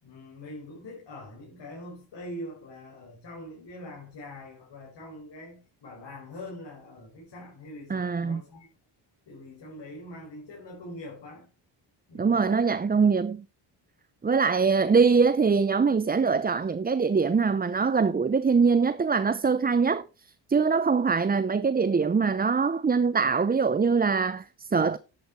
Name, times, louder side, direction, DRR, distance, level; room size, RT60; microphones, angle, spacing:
voice 1, 0.0-8.7 9.3-11.5 12.1-12.6, left 1 dB, 60° left, 6.4 m, -43 dB
voice 2, 7.9-8.4 12.1-13.4 14.2-25.0, right 5 dB, 20° right, 0.6 m, -23 dB
11.5 x 7.9 x 4.6 m
cardioid pair, 75°, 47 cm